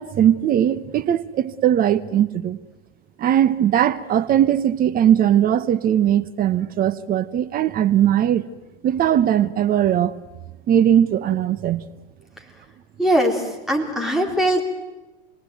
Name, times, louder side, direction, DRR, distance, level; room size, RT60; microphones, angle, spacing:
voice 1, 0.0-2.6 3.2-8.5 8.8-10.2 10.7-11.8, right 10 dB, 25° right, 0.9 m, -19 dB
voice 2, 13.0-14.6, right 1 dB, ahead, 4.0 m, -20 dB
28.0 x 19.0 x 9.3 m
hypercardioid pair, 130°, 33 cm